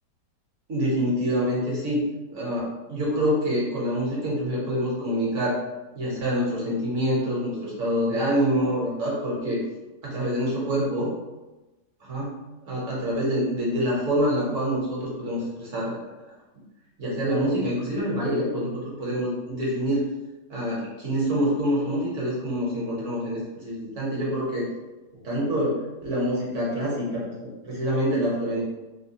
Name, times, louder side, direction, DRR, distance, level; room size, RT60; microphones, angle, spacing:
voice 1, 0.7-2.0 2.3-5.6 5.9-9.6 10.0-11.1 12.0-12.3 12.7-16.0 17.0-20.0 20.5-24.7 25.2-28.6, equal, 50° right, -5 dB, 1.1 m, -26 dB
3.4 x 2.2 x 2.7 m, 1.1 s
omnidirectional pair, 1.9 m